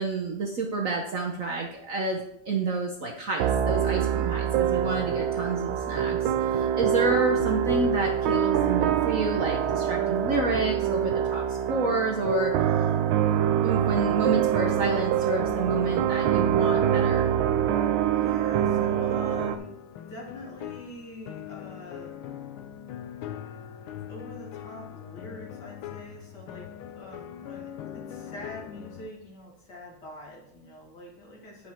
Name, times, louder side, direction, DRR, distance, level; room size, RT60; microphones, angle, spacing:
voice 1, 0.0-12.5 13.6-17.3, right 3 dB, 50° right, 0 dB, 1.1 m, -29 dB
sound 1, 3.4-19.6, right 9 dB, 85° right, 1.5 m, -25 dB
voice 2, 18.0-19.8 20.1-22.2 24.1-31.7, equal, 55° left, -3 dB, 2.8 m, -44 dB
sound 2, 18.6-29.1, left 10 dB, 80° left, 1.6 m, -41 dB
9.7 x 5.9 x 4.4 m, 0.74 s
omnidirectional pair, 2.2 m